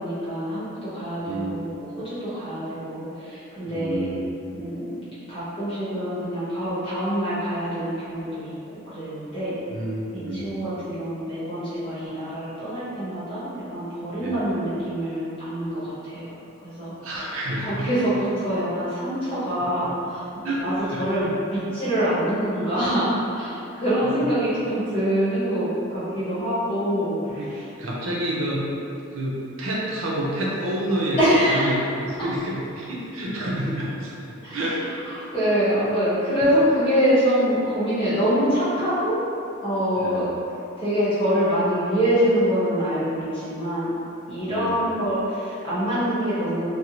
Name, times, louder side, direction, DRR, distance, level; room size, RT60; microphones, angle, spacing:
voice 1, 0.0-4.1 4.5-4.9 5.3-9.6 10.1-16.3 16.6-16.9 17.5-27.7 31.2-31.7 32.2-32.3 34.4-39.2 39.6-40.3 40.8-43.9 44.3-46.7, equal, 25° left, -12 dB, 0.9 m, -25 dB
voice 2, 1.3-1.6 3.7-4.2 9.7-10.5 14.2-14.3 17.0-17.9 20.4-20.6 20.9-21.0 27.3-27.5 27.8-28.7 29.1-31.2 31.5-34.8 40.0-40.2 44.5-44.7, right 1 dB, 80° right, -4 dB, 0.5 m, -28 dB
2.5 x 2.0 x 2.8 m, 2.7 s
head